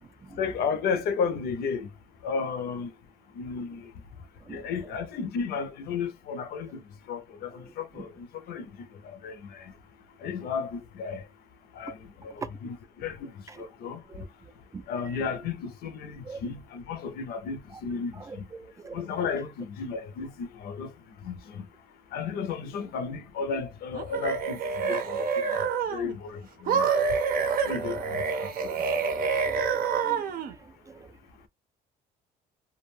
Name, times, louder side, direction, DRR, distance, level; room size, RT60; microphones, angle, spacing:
voice 1, 0.4-1.9 2.2-2.9 3.3-3.9 4.5-9.7 10.2-11.3 11.7-14.0 14.9-18.5 18.9-20.9 21.2-21.6 22.1-26.9 27.6-28.5, left 5 dB, 65° left, 0.6 m, -34 dB
voice 2, 4.5-4.9 8.0-8.1 13.5-13.6 14.1-14.3 14.7-15.2 16.3-16.4 18.2-19.1 27.5-27.9 28.6-28.8 29.2-30.2 30.5-30.6 30.9-31.1, right 4 dB, 20° right, 0.3 m, -44 dB
sound 1, 23.9-26.2 26.7-30.5, right 5 dB, 60° right, 0.6 m, -27 dB
2.3 x 2.2 x 3.1 m
cardioid pair, 110°, 17 cm